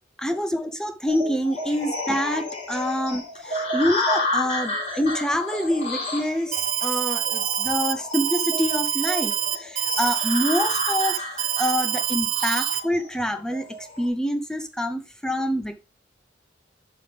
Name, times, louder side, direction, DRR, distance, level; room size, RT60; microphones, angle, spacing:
voice 1, 0.2-11.2 11.6-13.7 14.0-15.8, equal, 5° left, 7 dB, 0.5 m, -26 dB
sound 1, 1.1-14.1, left 2 dB, 40° left, 3.9 m, -31 dB
Alarm, 6.5-12.8, right 10 dB, 40° right, 0.7 m, -26 dB
11.0 x 5.1 x 3.3 m, 0.28 s
head